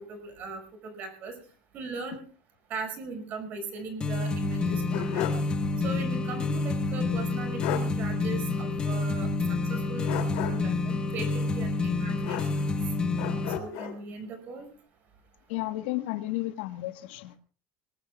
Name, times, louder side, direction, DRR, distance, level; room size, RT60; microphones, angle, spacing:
voice 1, 0.0-1.3 1.7-2.2 2.7-5.3 5.8-10.1 10.4-12.8 13.6-14.7, right 4 dB, 35° right, 5.5 m, -39 dB
sound 1, 4.0-13.6, left 3 dB, 15° left, 1.1 m, -28 dB
sound 2, 4.5-5.5 5.9-6.0 7.2-7.3 7.6-7.9 10.0-10.8 12.2-12.8 13.2-14.0, left 12 dB, 60° left, 2.8 m, -34 dB
voice 2, 15.5-17.4, left 17 dB, 85° left, 1.4 m, -32 dB
25.0 x 20.5 x 2.4 m
cardioid pair, 180°, 5 cm